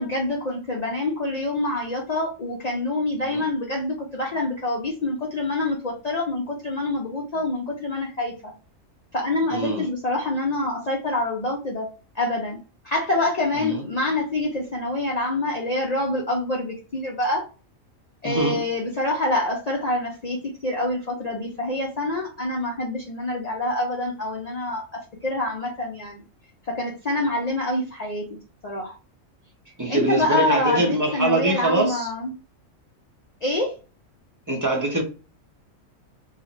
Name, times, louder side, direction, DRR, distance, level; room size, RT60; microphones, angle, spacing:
voice 1, 0.0-8.5 9.1-11.9 12.1-12.6 12.8-17.4 18.2-20.4 20.6-26.2 26.7-28.2 28.6-28.9 29.9-32.3 33.4-33.7, left 2 dB, 55° left, 0.4 m, -26 dB
voice 2, 9.5-9.9 13.6-13.8 18.2-18.6 29.8-32.1 34.5-35.0, right 1 dB, 20° right, 0.5 m, -23 dB
2.9 x 2.4 x 2.9 m
omnidirectional pair, 1.4 m